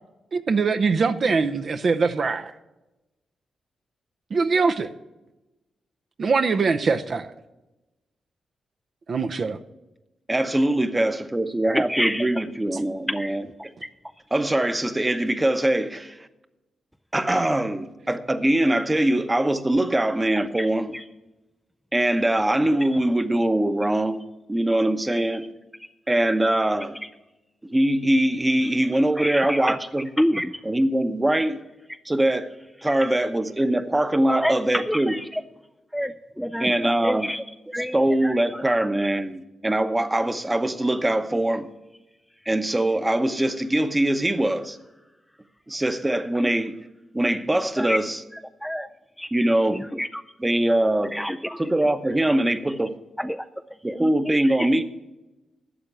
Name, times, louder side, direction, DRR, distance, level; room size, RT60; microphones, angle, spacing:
voice 1, 0.3-2.5 4.3-4.9 6.2-7.3 9.1-9.6, right 4 dB, 50° right, 0.7 m, -22 dB
voice 2, 10.3-13.7 14.3-16.2 17.1-21.0 21.9-24.2 24.5-25.5 26.1-27.0 27.7-30.1 30.6-31.6 32.0-32.5 32.8-35.2 36.6-37.3 37.8-41.7 42.5-44.8 45.7-46.8 47.1-48.2 49.3-49.8 50.4-51.2 51.6-52.9 53.8-54.8, right 1 dB, 15° right, 0.9 m, -22 dB
voice 3, 11.9-12.3 13.2-13.3 29.2-29.7 30.2-30.5 34.3-34.5 34.9-35.2 35.9-36.1 36.4-37.4 37.7-38.0 38.2-38.3 47.8-48.0 48.6-48.9 49.2-49.3 50.0-50.1 51.1-51.6 54.0-54.1, equal, ahead, 0.4 m, -26 dB
12.0 x 7.5 x 6.8 m
cardioid pair, 90°, 0 cm